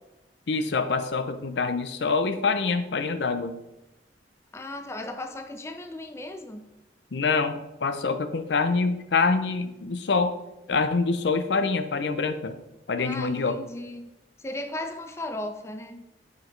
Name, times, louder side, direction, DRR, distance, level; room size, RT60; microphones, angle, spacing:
voice 1, 0.5-3.5 7.1-10.3 10.7-12.5 12.9-13.6, left 4 dB, 70° left, 10 dB, 0.5 m, -25 dB
voice 2, 4.5-6.6 13.0-14.1 14.4-16.0, left 1 dB, 15° left, 6 dB, 0.4 m, -36 dB
9.0 x 5.0 x 3.2 m, 0.96 s
head